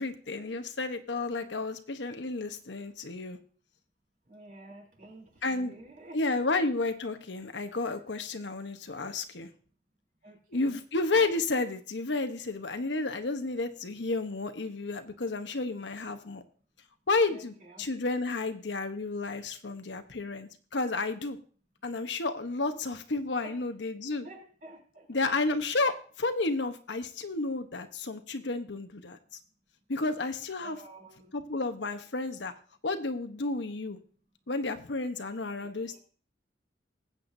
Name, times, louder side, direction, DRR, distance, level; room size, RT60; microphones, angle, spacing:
voice 1, 0.0-3.4 5.4-5.7 6.1-9.5 10.5-16.4 17.1-21.4 21.8-24.3 25.1-29.2 29.9-30.8 31.3-32.5 32.8-34.0 34.5-36.0, left 3 dB, 80° left, 8 dB, 1.1 m, -31 dB
voice 2, 4.3-6.2 10.2-10.8 17.3-17.8 23.4-23.6 24.2-25.1 25.7-25.9 30.6-31.4 35.5-36.0, right 2 dB, 45° right, 0 dB, 3.5 m, -50 dB
20.0 x 8.4 x 2.7 m, 0.42 s
head